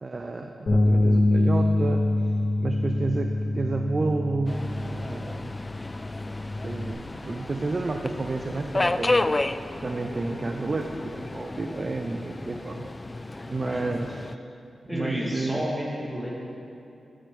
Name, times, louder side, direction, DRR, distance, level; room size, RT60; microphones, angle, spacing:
voice 1, 0.0-5.5 6.6-9.3 9.8-12.9 13.5-14.2 14.9-15.7, right 3 dB, 45° right, 5 dB, 0.6 m, -31 dB
Bass guitar, 0.7-6.9, left 1 dB, 75° left, 2.8 m, -25 dB
Subway metro underground, 4.5-14.3, left 2 dB, 30° left, 0.3 m, -32 dB
voice 2, 13.6-13.9 14.9-16.3, equal, ahead, -4 dB, 2.3 m, -31 dB
14.5 x 11.0 x 3.5 m, 2.8 s
cardioid pair, 60°, 0 cm